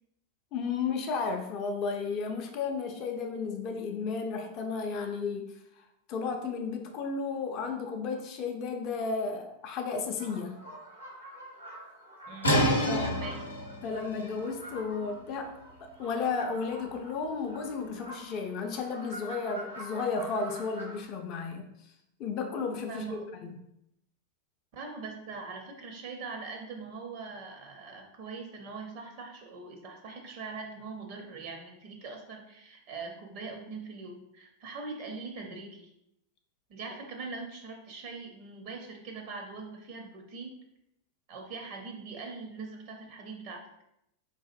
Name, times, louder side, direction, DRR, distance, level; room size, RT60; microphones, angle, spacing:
voice 1, 0.5-5.5 6.1-10.6 12.5-13.1 13.8-15.5 16.0-21.7 22.2-23.5, left 4 dB, 40° left, 3 dB, 0.4 m, -33 dB
sound 1, 10.2-21.0, right 1 dB, 90° right, 1.2 m, -46 dB
voice 2, 12.3-13.4 22.9-23.3 24.7-35.9 36.7-40.6 41.3-43.6, right 4 dB, 45° right, 3 dB, 0.5 m, -42 dB
sound 2, 12.4-18.1, equal, 80° left, 0.6 m, -31 dB
4.0 x 2.4 x 2.4 m, 0.81 s
figure-of-eight pair, 90°, 0 cm